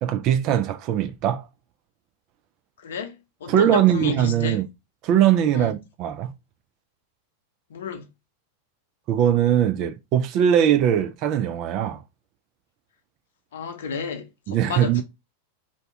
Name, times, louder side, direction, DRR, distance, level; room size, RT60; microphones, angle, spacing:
voice 1, 0.0-1.5 3.5-4.6 5.0-6.3 9.1-12.0 14.5-15.0, right 10 dB, 40° right, 0.4 m, -21 dB
voice 2, 2.8-3.1 3.4-4.6 5.5-5.7 7.7-8.1 13.5-15.0, left 6 dB, 60° left, 0.6 m, -31 dB
2.7 x 2.2 x 3.1 m
figure-of-eight pair, 90°, 0 cm